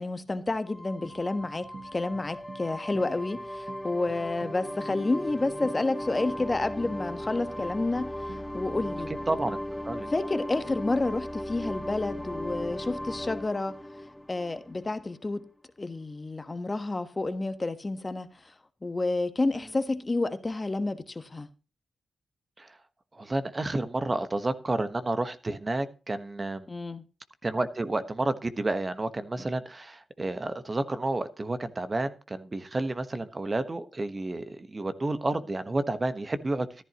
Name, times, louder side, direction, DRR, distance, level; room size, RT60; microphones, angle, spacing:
voice 1, 0.0-9.1 10.1-13.8 14.3-15.5 15.8-18.5 18.8-21.5 26.7-27.0, left 2 dB, 35° left, 1.2 m, -30 dB
sound 1, 0.7-15.1, left 1 dB, 5° left, 0.8 m, -37 dB
sound 2, 1.0-8.7, right 3 dB, 55° right, 1.7 m, -49 dB
voice 2, 9.3-9.6 9.8-10.1 22.6-22.8 23.1-26.7 27.4-36.8, right 2 dB, 35° right, 1.2 m, -30 dB
14.0 x 11.0 x 3.0 m
supercardioid pair, 45°, 0 cm